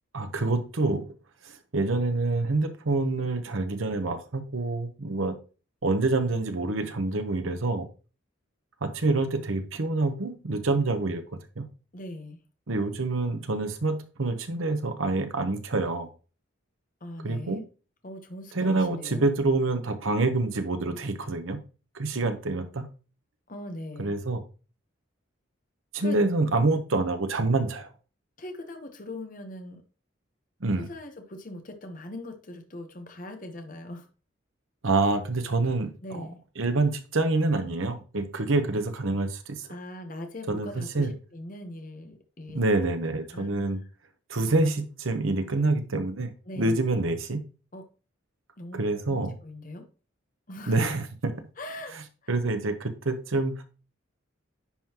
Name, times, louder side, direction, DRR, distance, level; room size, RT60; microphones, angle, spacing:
voice 1, 0.1-1.0 1.7-5.3 5.8-7.9 8.8-11.2 11.6-11.7 12.7-16.1 17.2-17.6 18.5-21.6 21.9-22.9 24.0-24.4 25.9-27.9 30.6-30.9 34.8-36.3 36.6-39.6 40.5-40.7 40.9-41.1 42.5-43.8 44.3-47.4 48.7-49.3 50.7-51.3 52.3-53.6, right 2 dB, 75° right, 8 dB, 1.0 m, -26 dB
voice 2, 11.9-12.4 17.0-17.6 18.0-19.3 23.5-24.1 26.0-26.2 28.4-29.8 30.8-34.1 36.0-36.4 39.7-42.6 43.2-43.9 46.4-46.8 47.7-47.8 48.6-49.9 50.5-50.8 51.6-52.0 52.2-52.3, left 1 dB, 40° left, 5 dB, 0.9 m, -41 dB
10.0 x 3.8 x 2.9 m, 0.36 s
head